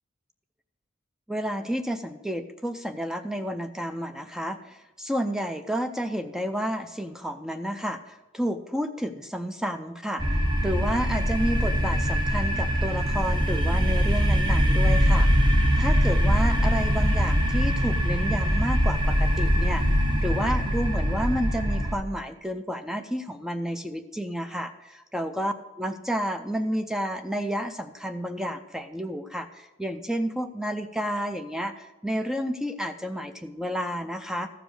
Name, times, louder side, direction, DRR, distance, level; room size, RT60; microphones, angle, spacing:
voice 1, 1.3-10.2 10.6-15.3 15.8-19.8 20.2-34.5, equal, 5° right, 8 dB, 0.4 m, -31 dB
sound 1, 10.2-21.9, equal, 20° right, 0.9 m, -22 dB
14.0 x 5.1 x 6.3 m, 1.1 s
head